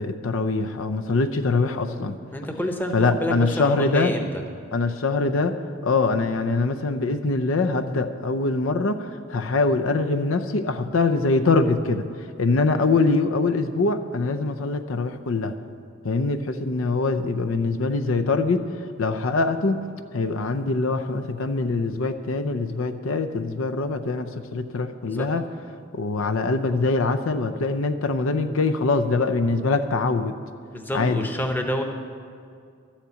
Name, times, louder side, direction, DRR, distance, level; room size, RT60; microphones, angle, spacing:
voice 1, 0.0-2.2 2.9-4.1 4.7-5.6 5.8-12.0 12.4-15.5 16.0-18.6 19.0-19.8 20.1-25.4 25.9-30.4 30.9-31.2, left 3 dB, 70° left, 7 dB, 0.6 m, -23 dB
voice 2, 2.3-4.3 25.0-25.3 30.7-31.8, left 1 dB, 10° left, 4 dB, 0.9 m, -28 dB
12.5 x 7.3 x 8.2 m, 2.3 s
head